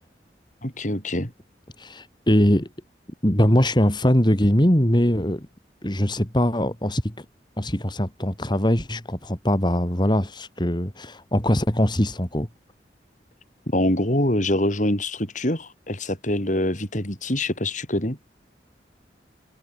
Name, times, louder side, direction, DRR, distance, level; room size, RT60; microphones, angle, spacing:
voice 1, 0.6-1.3 13.7-18.2, left 1 dB, 45° left, 6.7 m, -24 dB
voice 2, 1.8-2.7 3.2-5.5 5.8-7.3 7.6-12.5, equal, 25° left, 3.4 m, -21 dB
head